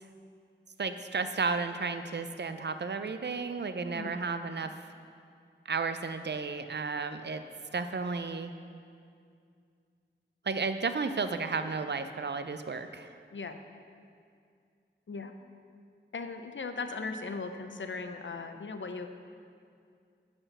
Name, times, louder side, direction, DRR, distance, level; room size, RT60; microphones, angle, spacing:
voice 1, 0.8-4.7 5.7-7.4 7.7-8.5 10.4-13.1, right 4 dB, 60° right, 9 dB, 0.5 m, -33 dB
voice 2, 16.1-19.1, left 4 dB, 70° left, 7 dB, 0.6 m, -38 dB
10.0 x 4.4 x 6.6 m, 2.3 s
wide cardioid pair, 50°, 20 cm